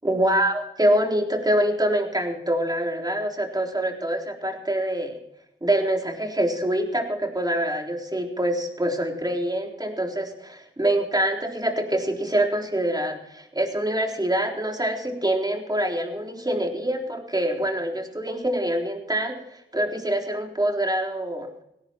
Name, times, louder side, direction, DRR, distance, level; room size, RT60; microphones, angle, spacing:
voice 1, 0.0-5.2 5.6-19.4 19.7-21.5, right 1 dB, 20° right, 2 dB, 3.8 m, -25 dB
17.5 x 17.5 x 4.5 m, 0.80 s
cardioid pair, 55°, 21 cm